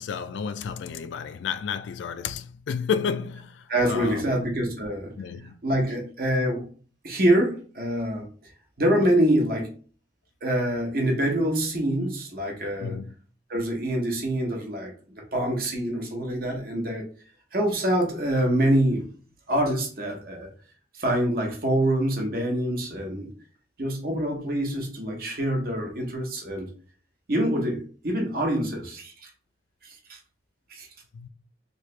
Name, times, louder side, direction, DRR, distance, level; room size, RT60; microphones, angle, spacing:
voice 1, 0.0-4.4 5.2-5.6 12.8-13.1 31.1-31.3, left 6 dB, 75° left, 0.3 m, -31 dB
voice 2, 3.7-5.1 5.6-6.7 7.0-8.3 8.8-9.7 10.4-13.0 13.5-17.0 17.5-19.1 19.5-20.5 20.9-23.3 23.8-26.7 27.3-29.3 29.8-30.2 30.7-30.9, right 1 dB, 50° right, 0.9 m, -25 dB
3.1 x 2.8 x 3.2 m
head